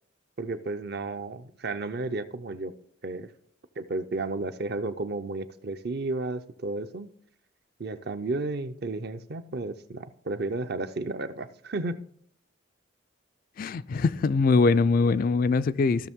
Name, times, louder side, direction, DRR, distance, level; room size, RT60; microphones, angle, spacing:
voice 1, 0.4-2.7 3.0-3.3 3.8-7.1 7.8-12.0, right 2 dB, 50° right, 0.6 m, -33 dB
voice 2, 13.6-16.1, left 4 dB, 40° left, 0.3 m, -22 dB
15.0 x 6.2 x 3.6 m
head